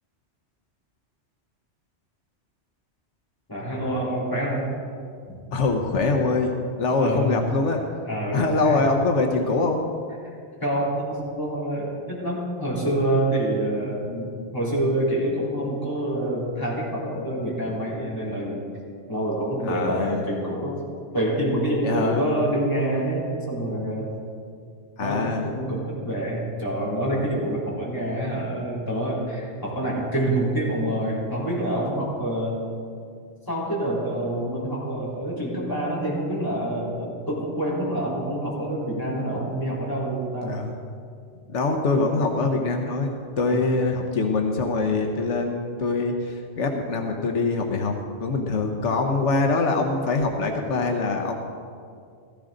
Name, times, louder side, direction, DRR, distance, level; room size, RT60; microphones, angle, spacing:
voice 1, 3.5-4.7 5.3-5.4 7.0-7.3 8.1-8.8 10.6-18.6 19.1-20.8 21.1-24.1 25.0-32.6 33.5-40.5 43.5-43.7, right 1 dB, 20° left, -7 dB, 3.5 m, -27 dB
voice 2, 5.5-6.5 6.8-7.8 8.3-9.9 19.7-20.2 21.8-22.3 25.0-25.4 40.5-40.7 41.5-51.4, left 3 dB, 85° left, 3 dB, 1.3 m, -24 dB
15.0 x 14.5 x 3.9 m, 2.2 s
omnidirectional pair, 1.2 m